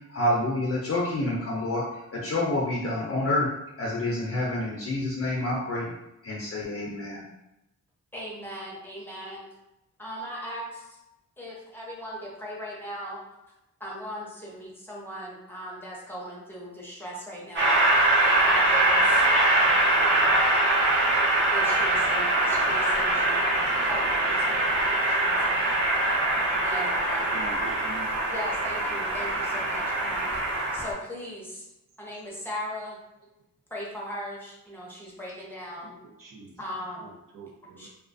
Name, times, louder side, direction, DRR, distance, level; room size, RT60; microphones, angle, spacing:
voice 1, 0.1-1.8 2.1-3.5 3.8-5.9 6.2-7.2, left 1 dB, 45° left, -4 dB, 0.5 m, -28 dB
voice 2, 8.1-9.5 10.0-11.0 11.4-13.2 13.8-17.8 18.2-19.3 19.6-20.3 21.5-24.7 25.0-25.8 26.6-27.4 28.3-30.3 30.7-31.7 32.0-33.0 33.7-36.0 36.6-37.2 37.8-37.9, equal, 5° left, -5 dB, 0.7 m, -38 dB
Train, 17.6-30.9, right 2 dB, 35° right, 1.0 m, -23 dB
voice 3, 27.3-28.1 35.8-35.9 36.2-36.5 37.0-37.9, right 4 dB, 85° right, -2 dB, 0.7 m, -43 dB
2.4 x 2.3 x 2.5 m, 0.92 s
wide cardioid pair, 105°, 32 cm